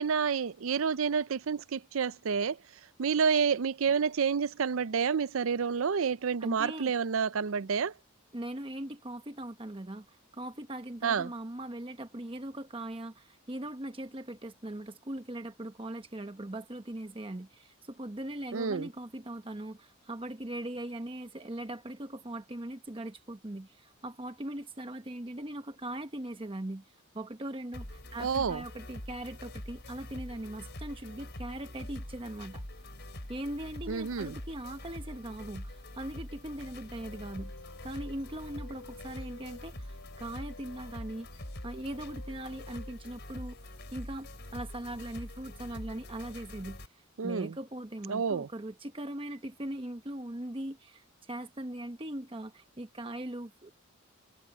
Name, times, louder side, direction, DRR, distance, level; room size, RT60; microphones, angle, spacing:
voice 1, 0.0-2.6 3.0-7.9 11.0-11.3 18.5-18.9 28.2-28.6 33.9-34.4 47.2-47.5 48.1-48.5, right 6 dB, 75° right, 0.5 m, -29 dB
voice 2, 6.4-6.9 8.3-26.8 27.1-32.6 33.3-37.5 37.8-41.3 41.6-53.7, right 1 dB, 25° right, 1.0 m, -40 dB
sound 1, 27.7-46.9, left 1 dB, 55° left, 5.8 m, -44 dB
sound 2, 36.9-45.8, left 3 dB, 90° left, 4.5 m, -54 dB
head